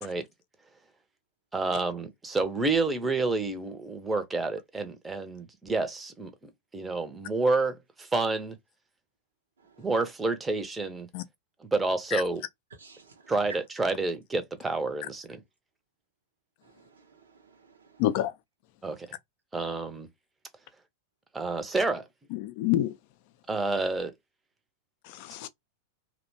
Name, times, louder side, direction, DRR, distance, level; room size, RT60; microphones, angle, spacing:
voice 1, 1.5-6.3 6.7-8.6 9.8-11.1 11.7-12.4 13.3-15.4 18.8-19.1 19.5-20.1 21.3-22.1 23.5-24.1, right 3 dB, 10° right, 0.6 m, -29 dB
voice 2, 12.8-13.3 16.6-18.0, right 4 dB, 65° right, 0.6 m, -57 dB
voice 3, 18.0-18.3 22.3-23.0 25.1-25.5, left 13 dB, 45° left, 0.4 m, -27 dB
2.8 x 2.1 x 2.6 m
figure-of-eight pair, 90°, 0 cm